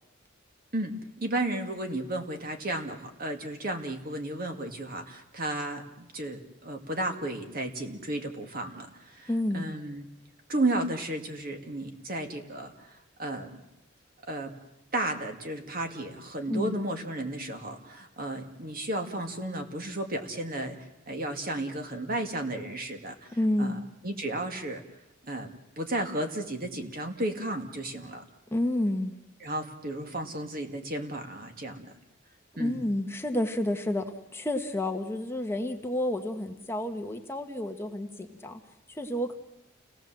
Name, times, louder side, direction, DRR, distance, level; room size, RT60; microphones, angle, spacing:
voice 1, 0.7-10.0 10.5-12.7 13.2-13.6 14.3-14.5 14.9-20.8 21.1-23.1 23.6-24.8 25.3-28.2 29.4-31.9 32.6-32.8, right 1 dB, 50° right, 5 dB, 2.2 m, -33 dB
voice 2, 9.3-9.8 16.5-16.8 23.3-23.8 28.5-29.2 32.6-38.6 38.9-39.3, left 1 dB, 15° left, 5 dB, 1.2 m, -30 dB
29.0 x 18.0 x 7.6 m, 0.94 s
head